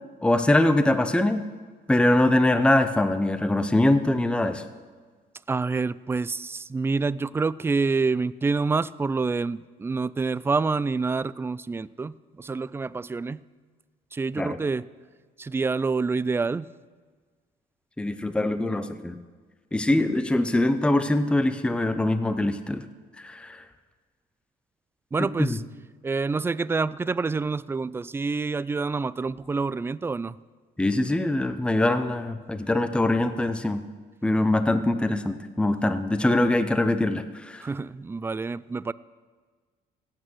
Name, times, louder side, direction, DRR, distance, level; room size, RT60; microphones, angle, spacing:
voice 1, 0.2-1.4 1.9-4.6 14.4-14.6 18.0-19.2 19.7-22.8 23.2-23.6 25.2-25.6 30.8-33.8 34.2-37.7, left 1 dB, 5° left, 10 dB, 0.7 m, -23 dB
voice 2, 5.5-13.4 14.1-14.8 15.4-16.7 25.1-25.6 26.0-30.4 37.6-38.9, right 4 dB, 15° right, 18 dB, 0.3 m, -27 dB
16.0 x 8.9 x 6.3 m, 1.5 s
cardioid pair, 110°, 17 cm